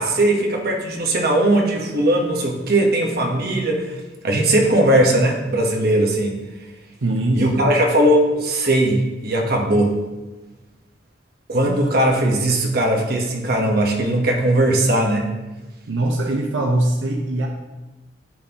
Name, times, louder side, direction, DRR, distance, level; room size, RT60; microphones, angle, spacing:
voice 1, 0.0-4.0 4.2-6.3 7.3-10.0 11.5-15.3, right 1 dB, 55° right, 1 dB, 1.1 m, -19 dB
voice 2, 7.0-7.8 11.6-11.8 15.9-17.5, right 1 dB, 90° right, 1 dB, 0.7 m, -22 dB
11.5 x 4.1 x 2.9 m, 1.1 s
head